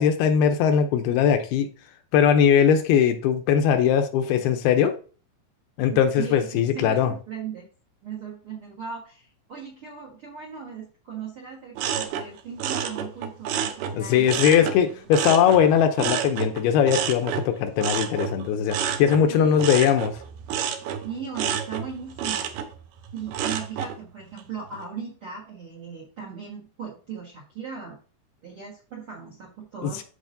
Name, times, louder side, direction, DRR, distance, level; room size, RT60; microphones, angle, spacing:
voice 1, 0.0-1.7 2.1-4.9 5.8-7.1 13.9-20.2 29.8-30.0, left 8 dB, 80° left, 2.5 m, -20 dB
voice 2, 5.9-7.7 8.0-14.2 14.5-15.1 19.3-19.7 21.0-22.5 23.1-28.0 28.4-30.0, right 6 dB, 60° right, 1.4 m, -38 dB
sound 1, 11.8-14.8 15.1-24.0 24.4-24.8, right 8 dB, 80° right, 1.9 m, -30 dB
13.0 x 4.9 x 2.6 m
omnidirectional pair, 4.7 m